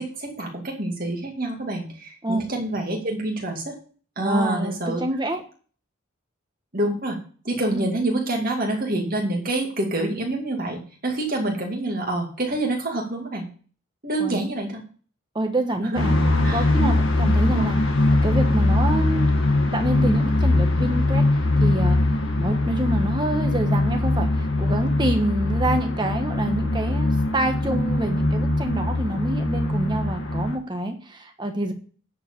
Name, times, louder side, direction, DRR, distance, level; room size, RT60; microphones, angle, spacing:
voice 1, 0.0-3.7 4.2-5.0 6.7-7.2 7.4-13.5 14.0-14.8 15.8-16.0 16.4-16.7 17.4-17.7, right 1 dB, 40° right, 1 dB, 2.3 m, -27 dB
voice 2, 4.2-5.4 7.7-7.9 14.2-14.4 15.3-16.2 16.5-17.8 18.2-19.3 19.7-21.2 21.6-22.0 22.4-24.3 24.6-31.7, right 1 dB, 20° right, 4 dB, 1.2 m, -27 dB
sound 1, 15.9-30.5, left 2 dB, 70° left, 1.6 m, -21 dB
9.9 x 4.7 x 6.8 m, 0.42 s
head